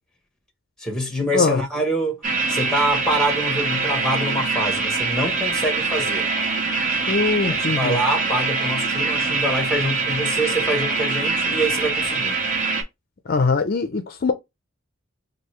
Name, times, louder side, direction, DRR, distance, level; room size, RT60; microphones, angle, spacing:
voice 1, 0.8-2.2 2.5-6.3 7.7-12.4, right 1 dB, 5° left, 1.0 m, -25 dB
sound 1, 2.2-12.8, right 4 dB, 40° right, 1.1 m, -24 dB
voice 2, 7.1-8.0 13.3-14.3, left 4 dB, 45° left, 0.4 m, -21 dB
4.5 x 2.6 x 3.1 m
head